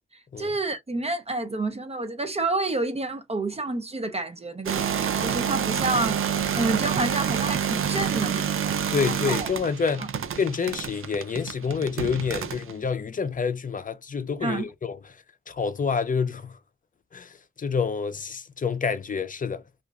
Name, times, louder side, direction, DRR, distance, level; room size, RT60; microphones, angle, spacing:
voice 1, 0.4-6.2 6.5-8.8 9.1-9.5 10.0-10.1 14.4-14.7, right 2 dB, 30° right, 0.5 m, -29 dB
sound 1, 4.7-12.7, right 8 dB, 85° right, 0.5 m, -28 dB
voice 2, 8.9-10.1 10.4-15.0 15.5-16.5 17.1-17.3 17.6-19.6, left 5 dB, 40° left, 0.5 m, -28 dB
2.9 x 2.4 x 2.3 m
wide cardioid pair, 110°, 21 cm